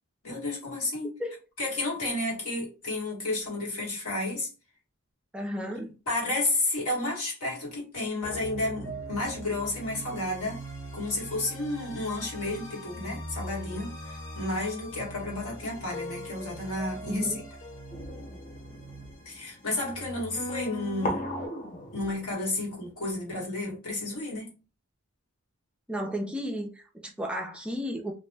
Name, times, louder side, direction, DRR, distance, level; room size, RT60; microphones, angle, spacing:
voice 1, 0.2-1.1 1.6-4.5 5.7-10.6 10.9-17.3 19.2-21.3 21.9-24.5, left 2 dB, 75° left, 1.5 m, -32 dB
voice 2, 5.3-5.9 17.1-17.4 25.9-28.1, equal, 5° right, 0.4 m, -33 dB
sound 1, 8.2-21.5, right 1 dB, 55° left, 1.2 m, -41 dB
sound 2, 17.9-22.9, equal, 35° left, 0.6 m, -39 dB
2.5 x 2.0 x 3.3 m
head